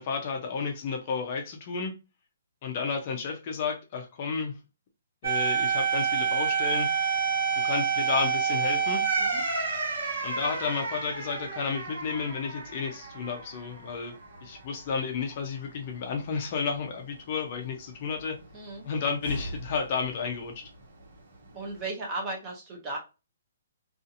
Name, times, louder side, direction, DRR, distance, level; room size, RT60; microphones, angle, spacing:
voice 1, 0.0-1.9 2.6-4.5 5.2-6.9 7.5-9.0 10.2-14.1 14.4-18.4 18.8-20.7, left 5 dB, 30° left, 0.4 m, -32 dB
sound 1, 5.2-13.9 14.2-14.3 19.2-19.8, right 6 dB, 85° right, 1.0 m, -29 dB
voice 2, 18.5-18.8 21.5-23.0, right 2 dB, 15° right, 0.6 m, -35 dB
2.6 x 2.4 x 2.6 m
hypercardioid pair, 175°, 0 cm